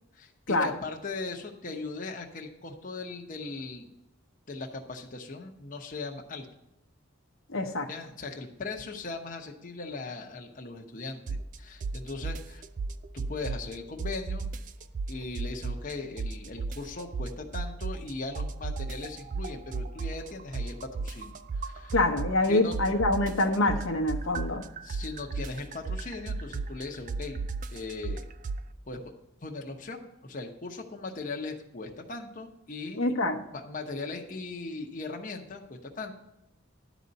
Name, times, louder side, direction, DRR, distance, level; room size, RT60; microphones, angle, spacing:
voice 1, 0.2-3.9 4.5-6.5 7.9-12.6 13.1-14.5 15.1-21.9 22.5-22.8 24.8-27.4 27.7-28.2 28.9-29.0 29.4-33.0 33.5-36.1, left 3 dB, 40° left, 1 dB, 0.9 m, -39 dB
voice 2, 7.5-7.9 21.9-24.6 33.0-33.3, left 2 dB, 70° left, 2 dB, 0.9 m, -25 dB
sound 1, 11.3-11.6 11.8-13.7 14.0-15.9 16.2-18.1 18.4-22.5 22.7-28.6, right 4 dB, 40° right, 0.3 m, -34 dB
11.0 x 4.1 x 7.6 m, 0.87 s
head